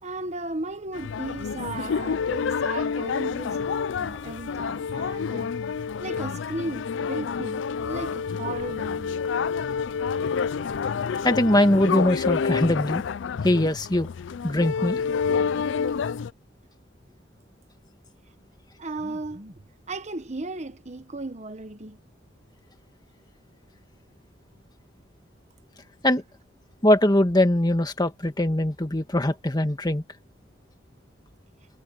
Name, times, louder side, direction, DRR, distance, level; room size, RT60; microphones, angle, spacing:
voice 1, 0.0-5.5 6.0-9.2 18.8-22.0, right 2 dB, 35° right, 1.2 m, -35 dB
sound 1, 0.9-16.3, left 6 dB, 75° left, 0.4 m, -28 dB
voice 2, 11.2-13.0 13.4-14.1 14.4-15.0 26.0-26.2 26.8-30.0, left 1 dB, 20° left, 1.7 m, -21 dB
head